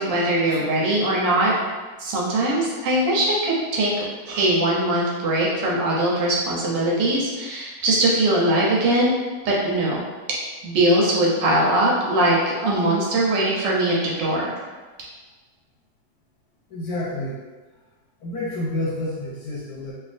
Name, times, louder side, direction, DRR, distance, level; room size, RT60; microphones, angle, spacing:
voice 1, 0.0-1.5 2.0-3.9 4.3-9.1 9.4-10.0 10.6-14.5, right 1 dB, 75° right, -4 dB, 1.4 m, -21 dB
voice 2, 16.7-17.4 18.2-19.9, left 1 dB, 70° left, -4 dB, 1.0 m, -29 dB
3.4 x 2.5 x 2.4 m, 1.3 s
omnidirectional pair, 2.0 m